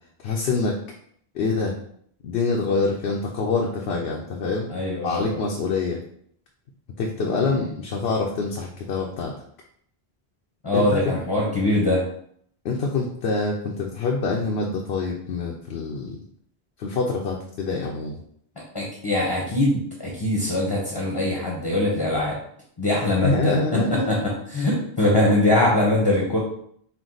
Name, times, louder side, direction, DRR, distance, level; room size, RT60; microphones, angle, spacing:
voice 1, 0.2-0.7 1.3-1.7 2.2-4.7 5.0-6.0 7.0-9.3 10.7-10.8 12.6-16.2 16.8-18.2 23.2-24.1, left 3 dB, 80° left, -1 dB, 0.8 m, -25 dB
voice 2, 4.7-5.4 7.3-7.7 10.6-12.0 18.7-22.4 22.8-26.4, left 1 dB, 25° left, -2 dB, 0.7 m, -22 dB
4.6 x 2.2 x 3.8 m, 0.65 s
omnidirectional pair, 1.1 m